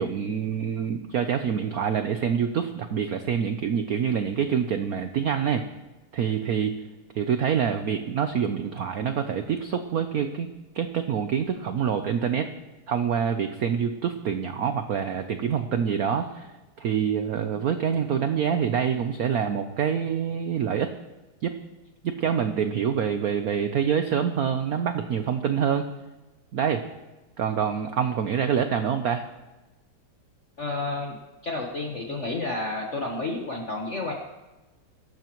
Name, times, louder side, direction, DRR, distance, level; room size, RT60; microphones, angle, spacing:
voice 1, 0.0-5.6 6.1-6.7 7.1-10.5 10.7-12.5 12.9-16.5 16.8-20.9 21.4-21.6 22.0-25.8 26.5-26.8 27.4-29.3, right 7 dB, 80° right, 8 dB, 0.8 m, -26 dB
voice 2, 30.6-31.2 31.4-34.1, left 2 dB, 40° left, 0 dB, 1.2 m, -30 dB
22.0 x 12.0 x 3.0 m, 1.1 s
omnidirectional pair, 2.4 m